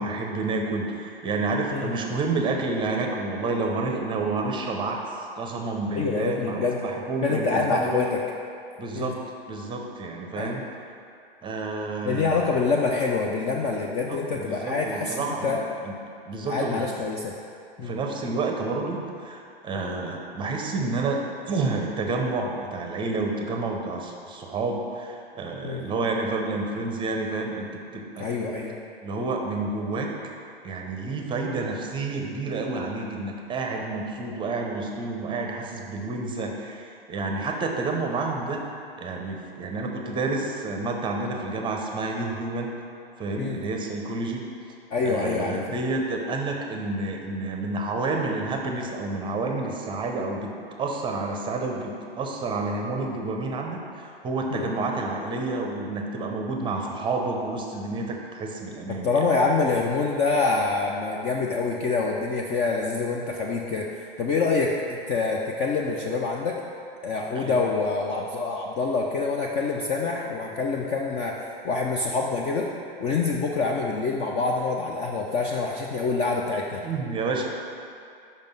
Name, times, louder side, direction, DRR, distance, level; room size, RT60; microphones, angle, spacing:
voice 1, 0.0-5.0 5.3-8.1 8.8-9.2 9.5-10.6 11.4-12.6 14.1-15.6 15.8-15.9 16.3-16.8 17.8-21.2 21.5-27.7 27.9-28.3 29.0-30.1 30.6-38.6 39.0-42.7 43.2-44.4 45.0-50.5 50.8-59.2 67.3-67.6 73.6-73.7 76.8-77.4, right 3 dB, 15° right, 1 dB, 0.7 m, -29 dB
voice 2, 5.9-6.9 7.2-8.2 8.9-9.1 10.4-10.6 12.0-15.6 16.5-17.3 17.8-18.0 25.6-25.8 28.2-28.7 43.4-43.6 44.9-45.8 54.5-54.7 59.0-66.5 67.0-72.7 73.0-76.8, left 4 dB, 20° left, -1 dB, 0.4 m, -26 dB
5.3 x 5.2 x 5.3 m, 2.5 s
hypercardioid pair, 105°, 30 cm